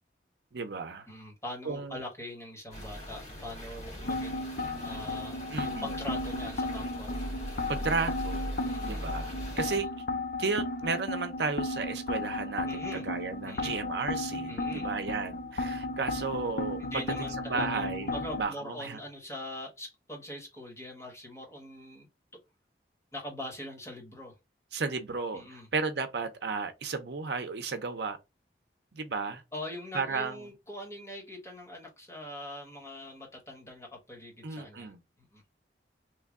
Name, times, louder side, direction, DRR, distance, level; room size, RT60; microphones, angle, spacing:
voice 1, 0.5-1.1 1.6-2.0 5.5-5.9 7.7-8.5 8.8-9.9 10.4-18.1 18.3-19.0 24.7-28.2 28.9-29.4 29.9-30.4 34.4-35.0, right 4 dB, 75° right, 0.6 m, -34 dB
voice 2, 1.1-4.5 4.8-7.1 7.6-7.9 8.6-9.0 9.6-9.8 12.6-13.1 13.4-13.8 14.5-14.9 16.8-22.1 23.1-24.3 25.3-25.7 29.5-34.9 35.2-35.4, left 1 dB, 15° left, 1.2 m, -42 dB
sound 1, 2.7-9.8, equal, 40° left, 1.3 m, -40 dB
sound 2, 4.0-18.4, left 2 dB, 60° left, 0.5 m, -35 dB
3.2 x 2.2 x 3.6 m
head